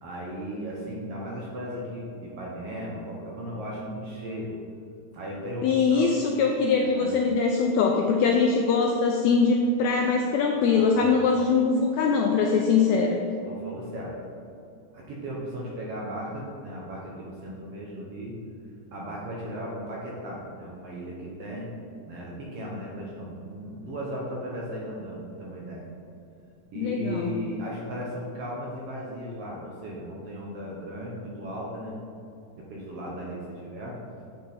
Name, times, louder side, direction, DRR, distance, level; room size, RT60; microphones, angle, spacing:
voice 1, 0.0-4.5 5.1-6.1 6.8-7.2 10.0-10.1 10.6-11.2 13.5-14.1 14.9-18.4 18.9-21.7 22.0-25.8 26.7-32.0 32.6-34.0, equal, 65° right, -4 dB, 1.7 m, -36 dB
voice 2, 5.6-13.2 26.8-27.3, left 5 dB, 85° left, 2 dB, 1.6 m, -22 dB
8.7 x 5.5 x 4.0 m, 2.5 s
omnidirectional pair, 3.7 m